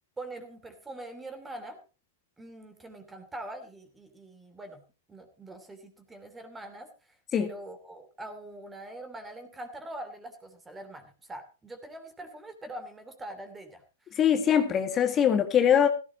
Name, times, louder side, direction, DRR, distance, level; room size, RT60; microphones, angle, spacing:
voice 1, 0.2-1.8 2.4-4.8 5.1-6.9 7.4-13.8, right 1 dB, 10° right, 8 dB, 2.8 m, -43 dB
voice 2, 14.2-15.9, left 8 dB, 25° left, 8 dB, 1.9 m, -22 dB
16.5 x 15.0 x 3.0 m, 0.32 s
hypercardioid pair, 105°, 0 cm